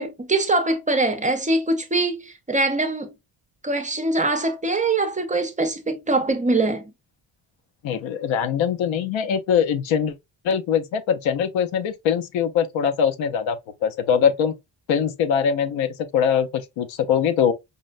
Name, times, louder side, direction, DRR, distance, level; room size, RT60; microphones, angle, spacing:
voice 1, 0.0-3.1 3.6-6.9, right 2 dB, 15° right, 0.5 m, -23 dB
voice 2, 7.8-10.1 10.4-14.5 14.9-17.5, left 7 dB, 90° left, 0.7 m, -22 dB
5.1 x 2.1 x 2.5 m
cardioid pair, 130°, 45 cm